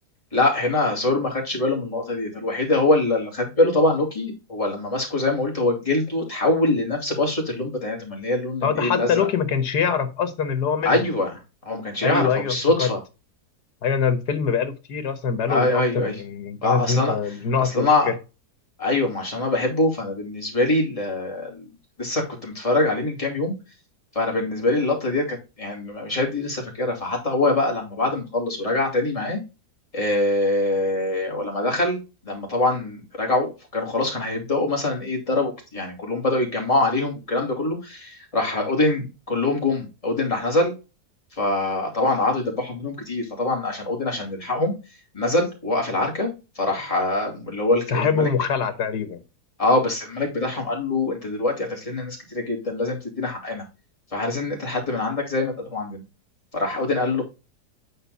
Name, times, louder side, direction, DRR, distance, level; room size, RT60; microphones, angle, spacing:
voice 1, 0.3-9.1 10.8-11.3 11.6-13.0 15.5-16.2 16.6-17.1 17.6-18.1 18.8-21.7 22.0-23.5 24.1-29.4 29.9-40.7 41.4-44.7 45.1-46.3 46.6-48.3 49.6-53.6 54.1-56.0 56.5-57.2, left 2 dB, 20° left, -2 dB, 2.7 m, -24 dB
voice 2, 8.6-11.1 12.0-12.9 13.8-18.1 47.9-49.2, left 6 dB, 80° left, 10 dB, 1.8 m, -24 dB
9.0 x 4.4 x 4.0 m, 0.28 s
omnidirectional pair, 1.7 m